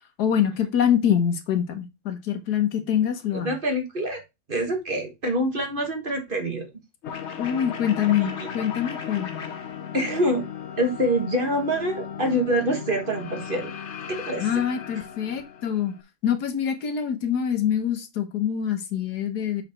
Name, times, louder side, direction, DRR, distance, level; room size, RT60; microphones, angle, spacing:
voice 1, 0.2-3.5 7.4-9.3 14.4-15.9 16.2-19.6, left 9 dB, 85° left, 1.6 m, -25 dB
voice 2, 3.3-4.2 4.5-6.7 8.2-8.3 9.9-10.4 10.8-13.7 14.1-14.5, right 1 dB, 35° right, 1.5 m, -25 dB
sound 1, 7.0-16.0, left 7 dB, 55° left, 0.9 m, -36 dB
7.1 x 4.0 x 4.3 m
omnidirectional pair, 1.7 m